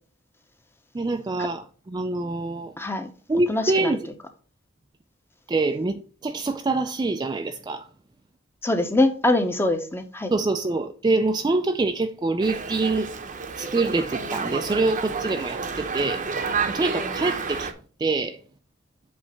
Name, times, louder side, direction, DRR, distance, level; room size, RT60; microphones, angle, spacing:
voice 1, 0.9-2.7 3.3-4.0 5.5-7.9 10.3-13.1 13.6-17.7 18.0-18.4, right 3 dB, 20° right, 0.3 m, -25 dB
voice 2, 2.8-3.1 3.5-4.0 8.6-10.3, left 2 dB, 10° left, 0.8 m, -23 dB
Dog, 12.4-17.7, right 5 dB, 40° right, 0.7 m, -30 dB
7.8 x 3.3 x 5.4 m
head